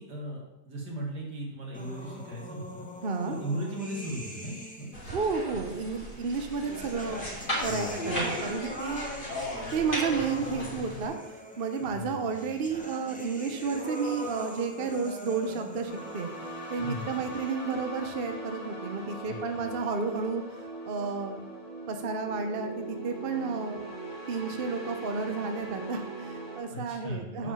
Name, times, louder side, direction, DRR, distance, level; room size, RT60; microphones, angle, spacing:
voice 1, 0.0-2.9 3.3-4.9 7.6-8.2 11.8-12.7 16.8-17.3 19.1-19.7 26.7-27.5, right 1 dB, 80° right, -2 dB, 2.8 m, -38 dB
sound 1, 1.7-5.2 6.2-17.8, left 1 dB, 5° left, 1.0 m, -42 dB
voice 2, 3.0-3.4 5.1-7.2 7.6-9.1 9.7-16.3 16.7-20.4 20.9-21.4 21.9-23.8 24.3-27.5, right 5 dB, 45° right, 6 dB, 0.9 m, -32 dB
sound 2, 4.9-11.1, left 1 dB, 30° left, 2.9 m, -36 dB
sound 3, 15.8-26.6, right 2 dB, 15° right, 2.3 m, -40 dB
8.5 x 4.9 x 7.1 m, 1.0 s
omnidirectional pair, 1.7 m